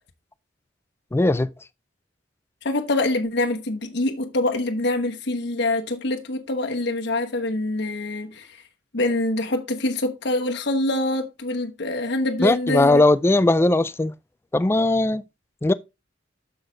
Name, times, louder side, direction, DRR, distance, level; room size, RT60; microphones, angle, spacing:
voice 1, 1.1-1.5 12.4-14.1 14.5-15.2 15.6-15.7, left 2 dB, 15° left, 0.3 m, -19 dB
voice 2, 2.6-8.6 8.9-13.0, left 2 dB, 65° left, 1.1 m, -25 dB
6.7 x 6.4 x 3.8 m
head